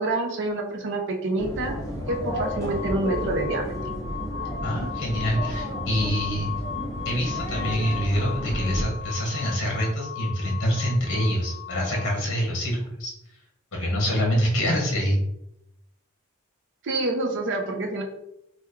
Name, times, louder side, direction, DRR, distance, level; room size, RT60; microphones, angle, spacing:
voice 1, 0.0-1.8 2.1-3.7 16.8-18.0, right 2 dB, 55° right, 3 dB, 0.6 m, -27 dB
sound 1, 1.4-8.8, equal, 15° left, 0.6 m, -32 dB
sound 2, 2.1-12.2, left 9 dB, 80° left, 0.4 m, -38 dB
voice 2, 4.6-6.5 7.0-13.1 13.7-15.2, equal, 60° left, -2 dB, 0.9 m, -25 dB
3.0 x 2.2 x 3.5 m, 0.82 s
head